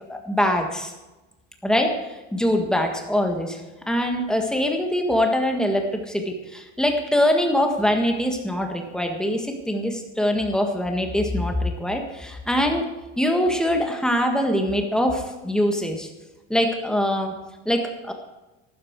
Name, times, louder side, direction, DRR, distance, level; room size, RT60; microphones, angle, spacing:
voice 1, 0.1-0.9 1.6-3.6 3.9-12.9 13.2-16.1 16.5-17.3 17.7-18.1, left 1 dB, ahead, 3 dB, 1.6 m, -23 dB
14.0 x 13.0 x 4.7 m, 1.1 s
cardioid pair, 170°, 34 cm